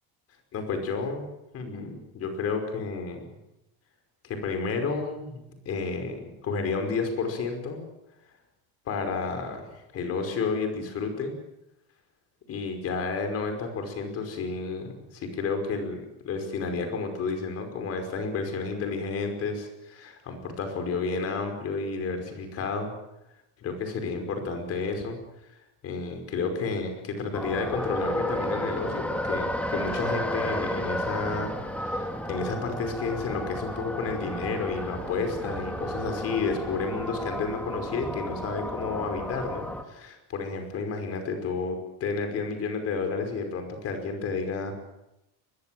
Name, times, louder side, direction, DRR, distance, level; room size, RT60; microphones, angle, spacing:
voice 1, 0.5-1.3 1.5-3.2 4.2-7.8 8.9-11.3 12.5-22.9 23.6-25.2 25.8-44.7, left 4 dB, 40° left, 6 dB, 5.3 m, -31 dB
sound 1, 27.3-39.8, equal, 5° left, 2.0 m, -32 dB
24.0 x 21.5 x 7.8 m, 0.88 s
cardioid pair, 180°, 38 cm